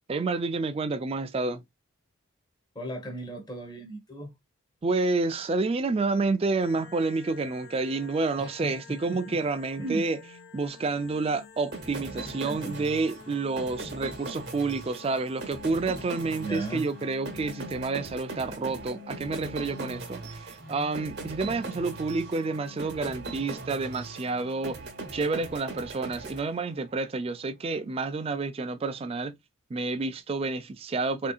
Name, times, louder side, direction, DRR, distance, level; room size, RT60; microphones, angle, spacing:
voice 1, 0.1-1.6 4.8-10.2 10.5-24.8 25.1-29.4 29.7-31.3, right 3 dB, 25° right, 0.3 m, -29 dB
voice 2, 2.7-4.3 8.4-9.4 9.8-10.1 12.1-12.8 16.4-16.9 21.4-21.7, right 2 dB, 20° left, 1.0 m, -37 dB
sound 1, 6.6-25.1, left 5 dB, 50° left, 0.6 m, -49 dB
sound 2, 11.7-27.0, right 3 dB, 50° right, 0.8 m, -40 dB
3.5 x 2.7 x 2.3 m
head